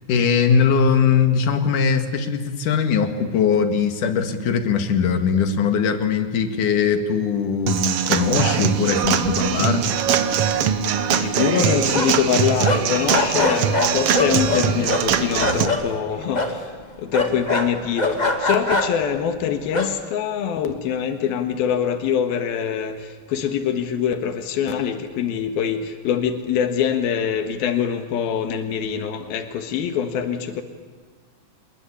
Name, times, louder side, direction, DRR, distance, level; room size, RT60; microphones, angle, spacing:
voice 1, 0.1-9.9, left 6 dB, 60° left, 8 dB, 3.2 m, -20 dB
Human voice / Acoustic guitar / Drum, 7.7-15.7, right 8 dB, 65° right, 1.6 m, -22 dB
sound 1, 9.0-9.7 10.0-10.1 10.4-12.3 12.6-15.8 16.3-16.6 17.1-19.1 19.7-19.9, left 2 dB, 15° left, 1.5 m, -24 dB
voice 2, 11.1-30.6, left 8 dB, 85° left, 8 dB, 3.5 m, -24 dB
sound 2, 14.2-16.8 17.4-17.5, right 2 dB, 40° right, 1.5 m, -39 dB
28.0 x 21.5 x 8.6 m, 1.5 s
omnidirectional pair, 4.2 m